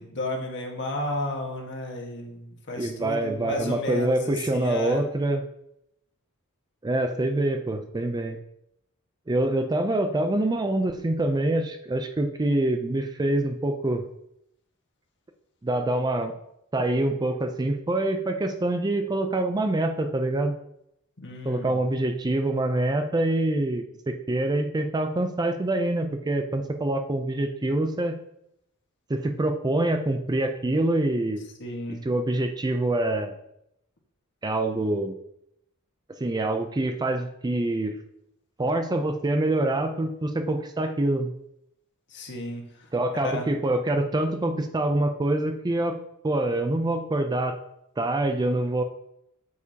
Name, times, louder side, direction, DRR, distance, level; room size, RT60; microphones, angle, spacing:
voice 1, 0.0-5.0 21.2-21.8 31.6-32.0 42.1-42.9 43.2-43.4, left 1 dB, 55° left, 1 dB, 1.5 m, -33 dB
voice 2, 2.8-5.4 6.8-8.4 9.3-14.1 15.6-16.3 16.7-20.6 21.4-28.2 29.1-31.4 32.0-33.3 34.4-35.2 36.2-38.0 38.6-41.3 42.9-46.0 46.2-47.6 48.0-48.8, right 1 dB, 20° right, 6 dB, 0.4 m, -25 dB
8.3 x 7.2 x 2.8 m, 0.78 s
head